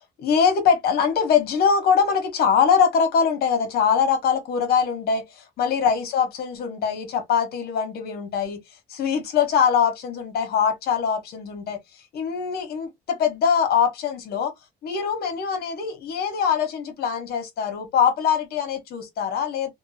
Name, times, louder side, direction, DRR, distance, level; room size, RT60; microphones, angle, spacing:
voice 1, 0.2-8.6 8.9-11.8 12.1-14.5 14.8-19.7, left 7 dB, 65° left, 1.2 m, -22 dB
2.9 x 2.3 x 2.6 m
cardioid pair, 110°, 17 cm